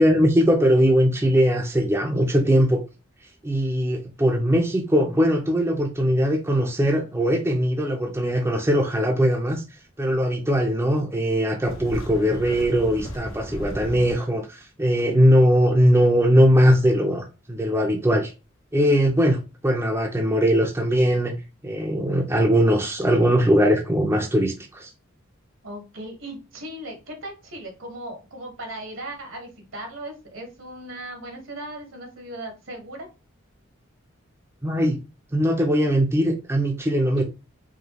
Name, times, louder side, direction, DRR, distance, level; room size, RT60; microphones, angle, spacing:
voice 1, 0.0-2.8 3.4-9.6 10.0-18.3 18.7-21.3 21.6-24.9 34.6-35.0 35.3-37.2, equal, 15° right, 0.5 m, -20 dB
sound 1, 11.6-14.1, equal, 80° left, 1.0 m, -35 dB
voice 2, 25.6-33.1 37.2-37.3, right 1 dB, 75° right, 1.3 m, -37 dB
4.9 x 2.3 x 2.9 m
head